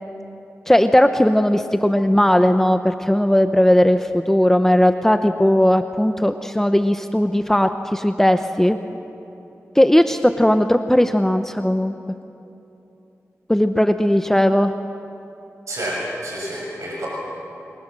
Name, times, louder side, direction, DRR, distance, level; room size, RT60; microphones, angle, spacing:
voice 1, 0.7-8.8 9.7-11.9 13.5-14.7, left 1 dB, 5° left, 7 dB, 0.9 m, -17 dB
voice 2, 15.7-17.1, right 1 dB, 75° right, -2 dB, 6.4 m, -29 dB
29.0 x 23.0 x 7.6 m, 2.9 s
wide cardioid pair, 80°, 5 cm